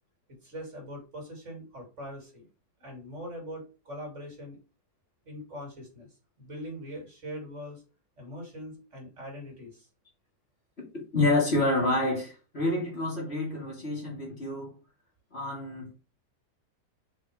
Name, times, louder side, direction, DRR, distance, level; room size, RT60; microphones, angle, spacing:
voice 1, 0.3-2.5 2.8-4.6 5.2-6.1 6.4-7.8 8.2-9.9, equal, 45° right, 2.8 m, -42 dB
voice 2, 11.1-14.7 15.3-15.9, left 2 dB, 40° left, 2.5 m, -28 dB
5.3 x 4.7 x 4.8 m
omnidirectional pair, 1.7 m